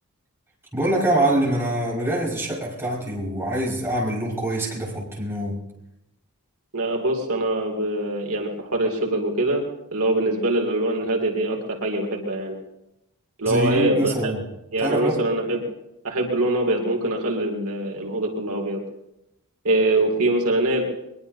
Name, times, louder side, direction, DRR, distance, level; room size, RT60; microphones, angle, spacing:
voice 1, 0.7-5.6 13.5-14.4 14.8-15.2, right 1 dB, 10° right, -4 dB, 5.3 m, -24 dB
voice 2, 6.7-9.6 9.9-12.6 13.4-14.3 14.7-15.6 16.0-18.8 19.6-20.8, right 2 dB, 70° right, 1 dB, 2.5 m, -23 dB
22.0 x 21.5 x 2.7 m, 0.87 s
head